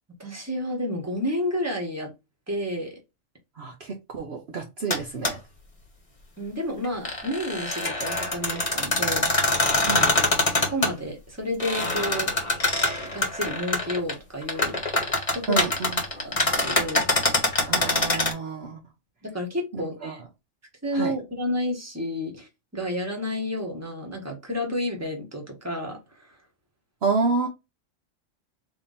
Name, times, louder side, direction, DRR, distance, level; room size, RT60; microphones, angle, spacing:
voice 1, 0.2-2.1 2.5-3.0 6.4-9.7 10.7-12.3 13.0-14.8 15.3-15.7 16.2-17.1 18.6-18.7 19.2-20.2 20.8-26.4, left 1 dB, 10° right, 1.4 m, -31 dB
voice 2, 3.6-5.4 9.8-10.1 15.5-16.0 17.7-18.8 19.7-20.2 20.9-21.1 27.0-27.5, right 4 dB, 55° right, 1.0 m, -29 dB
sound 1, 4.9-5.0 5.2-5.3 6.8-10.9 11.6-14.1 14.4-18.3, left 2 dB, 25° left, 1.1 m, -24 dB
3.6 x 2.9 x 4.0 m
omnidirectional pair, 1.4 m